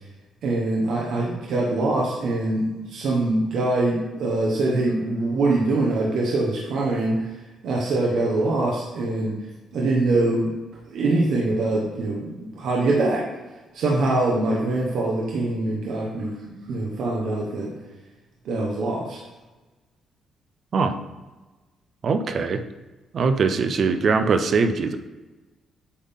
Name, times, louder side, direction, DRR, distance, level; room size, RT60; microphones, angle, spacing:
voice 1, 0.4-7.2 7.6-9.3 9.7-10.5 10.9-13.2 13.7-17.7 18.4-19.2, right 2 dB, 70° right, -3 dB, 1.1 m, -23 dB
voice 2, 22.0-22.6 23.1-25.0, right 4 dB, 55° right, 9 dB, 0.6 m, -21 dB
8.4 x 3.7 x 3.6 m, 1.2 s
cardioid pair, 90°, 0 cm